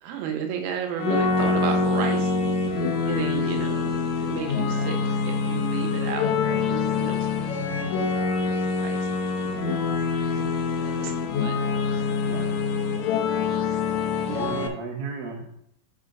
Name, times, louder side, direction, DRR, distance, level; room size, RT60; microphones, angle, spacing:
voice 1, 0.0-2.5 3.0-5.0 5.2-7.8 8.3-9.8 10.3-11.1 11.4-11.5 14.2-14.5, right 8 dB, 80° right, 4 dB, 2.8 m, -34 dB
sound 1, 1.0-14.7, left 4 dB, 85° left, 1.6 m, -25 dB
voice 2, 12.2-12.6 14.3-15.5, right 4 dB, 50° right, -1 dB, 1.9 m, -33 dB
6.2 x 4.9 x 5.2 m, 0.70 s
omnidirectional pair, 4.4 m